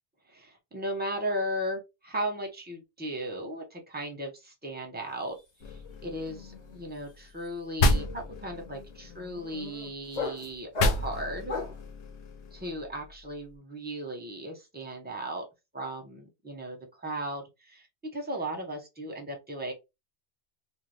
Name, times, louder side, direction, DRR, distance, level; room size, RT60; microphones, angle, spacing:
voice 1, 0.3-5.4 5.7-11.5 12.5-15.4 15.7-17.9 18.1-19.7, right 1 dB, 10° right, 2 dB, 0.6 m, -36 dB
sound 1, 5.1-5.4 5.6-11.9, left 3 dB, 40° left, 0.8 m, -39 dB
sound 2, 5.6-7.5 7.8-10.1 10.8-13.5, left 2 dB, 75° left, 0.8 m, -32 dB
2.7 x 2.1 x 3.2 m, 0.24 s
omnidirectional pair, 1.2 m